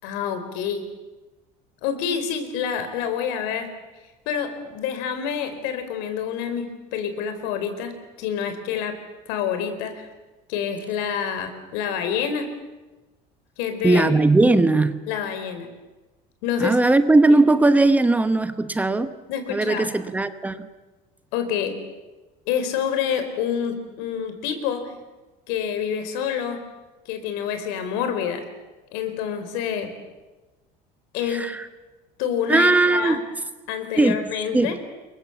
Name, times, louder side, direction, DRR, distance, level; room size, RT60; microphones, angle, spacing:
voice 1, 0.0-0.8 1.8-3.7 4.3-9.0 9.3-10.1 10.5-12.5 13.6-14.0 15.1-15.7 16.4-16.8 19.3-19.9 21.3-21.8 22.5-24.9 25.5-26.6 27.1-28.4 28.9-29.9 31.1-31.4 32.2-33.2 33.7-34.7, left 8 dB, 85° left, 8 dB, 4.4 m, -27 dB
voice 2, 13.8-15.0 16.6-19.1 19.5-20.7 31.2-31.7 32.5-33.2 34.0-34.8, right 2 dB, 10° right, 11 dB, 1.0 m, -19 dB
28.5 x 23.5 x 7.3 m, 1.2 s
cardioid pair, 165°, 18 cm